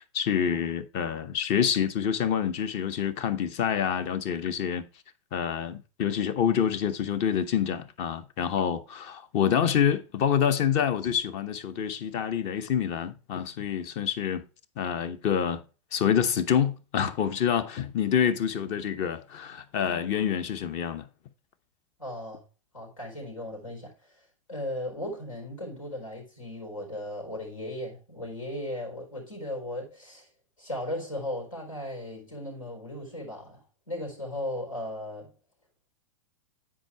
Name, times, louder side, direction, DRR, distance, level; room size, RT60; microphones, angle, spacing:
voice 1, 0.0-4.8 5.3-14.5 14.8-15.6 15.9-21.1, left 8 dB, 40° left, 0.9 m, -27 dB
voice 2, 22.0-22.4 22.7-23.9 24.5-30.3 30.6-35.3, left 1 dB, 85° left, 4.3 m, -36 dB
8.9 x 4.9 x 4.5 m
hypercardioid pair, 110°, 17 cm